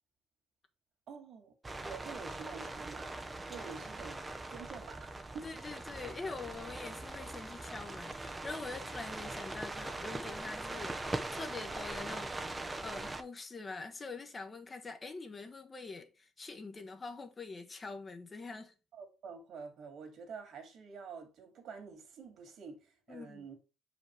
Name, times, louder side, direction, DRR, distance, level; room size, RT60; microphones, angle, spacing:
voice 1, 1.1-1.5 1.8-3.2 3.5-4.2 4.5-5.5 18.9-23.5, right 5 dB, 55° right, 2.5 m, -48 dB
sound 1, 1.6-13.2, right 2 dB, 15° right, 0.7 m, -41 dB
voice 2, 5.4-11.0 11.3-18.7 23.1-23.5, left 3 dB, 20° left, 1.0 m, -45 dB
7.4 x 5.1 x 3.2 m
cardioid pair, 145°, 0 cm